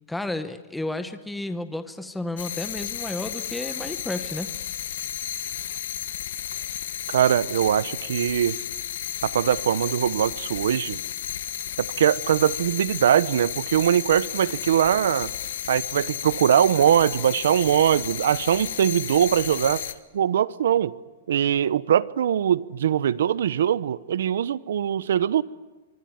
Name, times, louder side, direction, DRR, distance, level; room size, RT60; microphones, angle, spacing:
voice 1, 0.1-4.5, left 2 dB, 5° left, 1.0 m, -32 dB
sound 1, 2.4-19.9, left 11 dB, 70° left, 1.6 m, -33 dB
voice 2, 7.1-8.6 9.2-11.0 11.8-15.3 15.7-19.8 20.1-20.9 21.3-25.4, right 9 dB, 80° right, 1.0 m, -22 dB
25.0 x 24.0 x 9.5 m
supercardioid pair, 170°, 0 cm